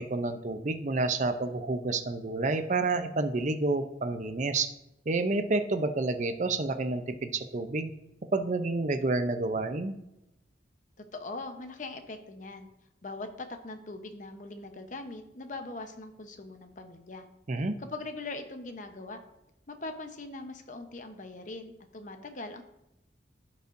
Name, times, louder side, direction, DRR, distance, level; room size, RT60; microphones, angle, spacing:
voice 1, 0.0-4.7 5.1-7.9 8.3-10.0 17.5-17.7, right 3 dB, 45° right, 8 dB, 0.6 m, -29 dB
voice 2, 11.1-12.7 13.0-17.3 17.8-19.2 19.7-22.6, left 2 dB, 45° left, 6 dB, 0.8 m, -41 dB
16.0 x 5.4 x 2.6 m, 0.88 s
head